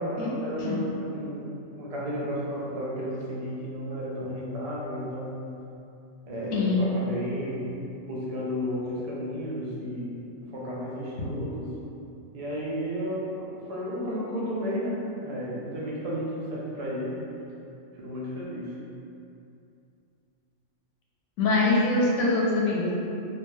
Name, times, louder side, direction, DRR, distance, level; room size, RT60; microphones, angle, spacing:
voice 1, 0.0-5.6 6.3-7.7 8.1-11.8 12.3-17.2 18.0-18.7, equal, 80° right, -6 dB, 0.3 m, -33 dB
voice 2, 21.4-22.9, left 3 dB, 75° left, -5 dB, 0.9 m, -23 dB
2.7 x 2.1 x 3.2 m, 2.7 s
omnidirectional pair, 1.4 m